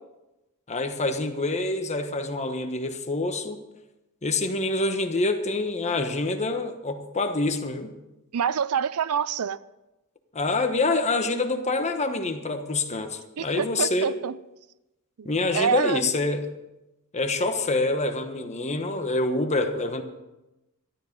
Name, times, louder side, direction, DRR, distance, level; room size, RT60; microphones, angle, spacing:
voice 1, 0.7-3.6 4.2-7.9 10.3-14.1 15.2-16.6 17.1-20.0, left 2 dB, 30° left, 1.2 m, -26 dB
voice 2, 8.3-9.6 13.4-14.4 15.2-15.3 15.5-16.1, right 7 dB, 75° right, 0.5 m, -26 dB
13.5 x 12.5 x 5.4 m
head